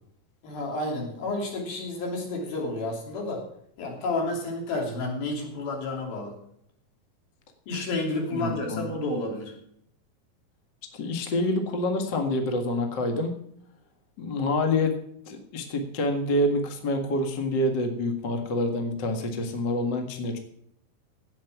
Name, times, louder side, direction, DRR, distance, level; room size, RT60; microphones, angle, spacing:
voice 1, 0.4-3.4 3.8-6.3 7.7-9.5, left 2 dB, 75° left, 1 dB, 4.8 m, -30 dB
voice 2, 8.3-8.9 10.9-13.4 14.2-15.0 15.3-20.4, left 1 dB, 40° left, 4 dB, 1.8 m, -27 dB
17.5 x 7.7 x 6.1 m, 0.71 s
omnidirectional pair, 4.3 m